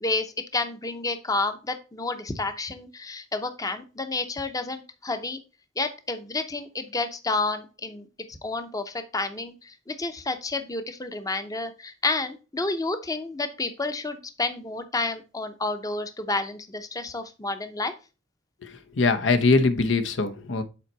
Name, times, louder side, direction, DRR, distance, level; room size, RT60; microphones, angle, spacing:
voice 1, 0.0-5.4 5.8-17.9, left 3 dB, 20° left, 0.7 m, -30 dB
voice 2, 18.6-20.6, left 3 dB, 80° left, 0.9 m, -22 dB
7.5 x 4.4 x 4.0 m
head